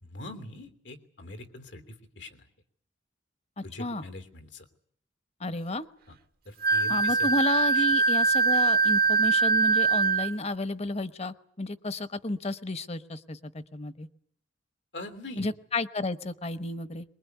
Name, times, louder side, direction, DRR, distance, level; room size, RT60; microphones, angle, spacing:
voice 1, 0.0-2.5 3.6-4.6 6.1-6.2 6.4-7.3 7.8-7.9 14.9-15.4, left 1 dB, 90° left, 7 dB, 2.9 m, -43 dB
voice 2, 3.6-4.0 5.4-5.9 6.9-14.1 15.4-17.0, left 1 dB, 35° left, 14 dB, 1.0 m, -32 dB
Wind instrument woodwind instrument, 6.6-10.3, right 4 dB, 55° right, 1.0 m, -23 dB
23.5 x 21.5 x 9.3 m, 0.64 s
head